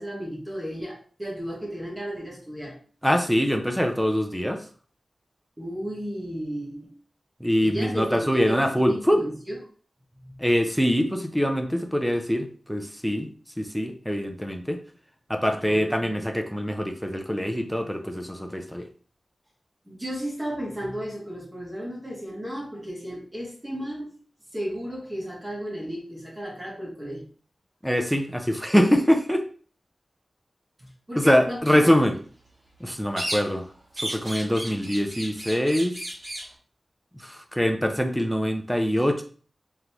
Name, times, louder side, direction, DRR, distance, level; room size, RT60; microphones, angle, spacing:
voice 1, 0.0-2.8 5.6-6.9 7.6-9.6 10.2-10.3 15.6-16.2 19.9-24.1 24.5-27.3 30.8-31.9, equal, 20° right, -4 dB, 1.4 m, -34 dB
voice 2, 3.0-4.6 7.4-9.2 10.4-13.3 13.6-14.8 15.3-18.9 27.8-29.4 31.1-32.2 32.8-33.7 34.0-36.0 37.1-39.2, equal, ahead, 5 dB, 0.6 m, -24 dB
sound 1, 33.2-33.7 34.0-36.5, right 1 dB, 65° right, 1.9 m, -34 dB
3.8 x 3.4 x 2.9 m, 0.41 s
wide cardioid pair, 100°, 0 cm